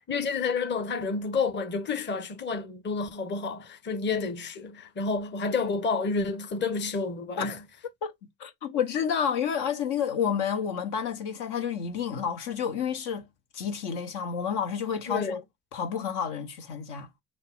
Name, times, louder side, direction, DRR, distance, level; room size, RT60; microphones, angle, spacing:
voice 1, 0.1-7.6 15.1-15.4, left 4 dB, 20° left, 1.0 m, -30 dB
voice 2, 8.4-13.3 13.5-15.4 15.7-17.1, left 7 dB, 55° left, 1.1 m, -30 dB
5.5 x 2.4 x 3.8 m
figure-of-eight pair, 55°, 48 cm